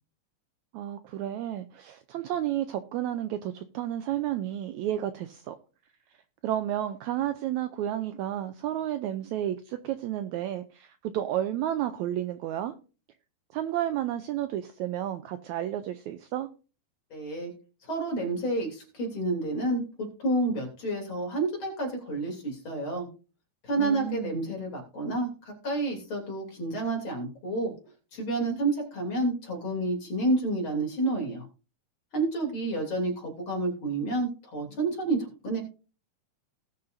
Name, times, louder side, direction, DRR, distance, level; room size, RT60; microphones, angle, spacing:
voice 1, 0.7-5.6 6.4-12.7 13.5-16.5 23.8-24.4, right 12 dB, 85° right, 1.7 m, -31 dB
voice 2, 17.1-17.5 17.9-23.1 23.7-27.7 28.1-31.5 32.1-35.6, right 2 dB, 40° left, 3.6 m, -29 dB
18.5 x 6.7 x 2.6 m
omnidirectional pair, 3.9 m